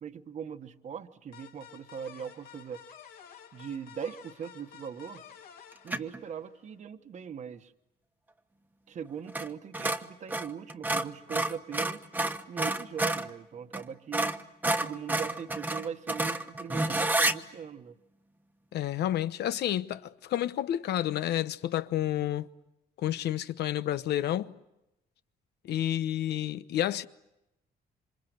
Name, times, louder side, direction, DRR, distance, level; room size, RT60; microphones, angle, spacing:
voice 1, 0.0-2.8 3.5-5.2 5.8-7.7 8.9-12.0 12.5-14.4 14.8-18.0, right 7 dB, 45° right, 1.2 m, -40 dB
sound 1, 1.3-6.7, left 9 dB, 60° left, 2.8 m, -52 dB
sound 2, 5.9-6.2 9.3-9.5 9.7-13.3 13.7-13.8 14.1-17.4, right 2 dB, 10° right, 1.1 m, -29 dB
voice 2, 18.7-22.5 23.0-24.5 25.6-27.1, left 12 dB, 90° left, 1.1 m, -30 dB
27.5 x 26.5 x 8.0 m
cardioid pair, 150°, 17 cm